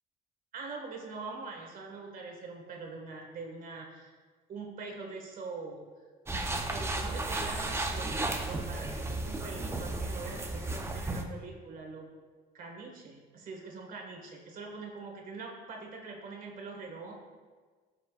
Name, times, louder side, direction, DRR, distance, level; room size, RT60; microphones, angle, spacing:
voice 1, 0.5-4.1 4.5-5.8 6.6-12.1 12.5-17.1, right 4 dB, 55° right, 1 dB, 1.8 m, -43 dB
sound 1, 6.3-11.2, right 2 dB, 15° right, 0.8 m, -34 dB
14.0 x 6.0 x 2.5 m, 1.4 s
cardioid pair, 110°, 17 cm